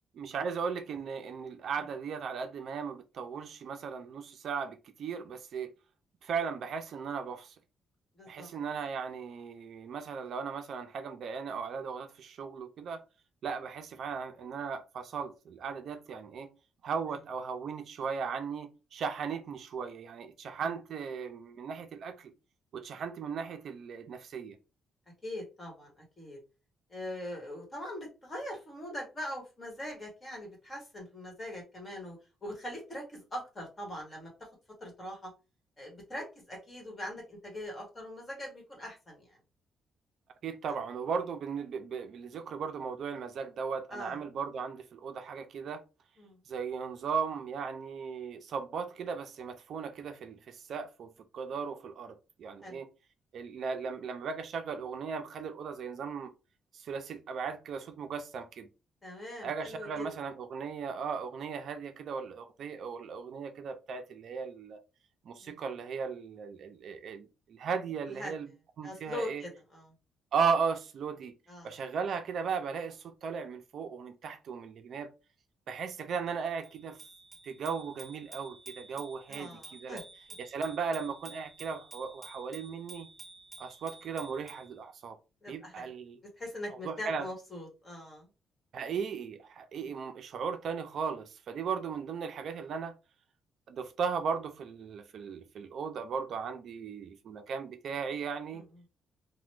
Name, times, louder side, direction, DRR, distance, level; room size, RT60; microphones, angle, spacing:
voice 1, 0.1-5.7 6.2-7.6 8.3-13.0 13.4-16.5 16.8-22.3 22.7-24.6 40.4-45.8 46.5-52.9 53.3-56.3 56.7-58.7 59.4-64.8 65.2-68.5 68.8-69.4 70.3-71.3 71.6-75.1 75.7-77.0 77.4-80.0 80.4-83.1 83.6-85.2 85.5-86.2 86.8-87.3 88.7-92.9 93.7-98.6, right 6 dB, 60° right, 0.4 m, -37 dB
voice 2, 8.1-8.5 20.6-20.7 25.2-26.4 26.9-34.3 34.8-35.3 35.8-39.4 43.9-44.2 46.2-46.4 52.6-52.8 59.0-60.1 65.4-65.6 68.1-68.3 68.8-69.9 71.5-71.7 79.3-80.0 85.4-85.9 86.4-88.3 89.8-89.9 98.5-98.6, left 1 dB, 20° left, 1.4 m, -42 dB
Bicycle bell, 76.6-84.7, right 2 dB, 15° right, 1.6 m, -51 dB
2.9 x 2.1 x 3.1 m
cardioid pair, 140°, 0 cm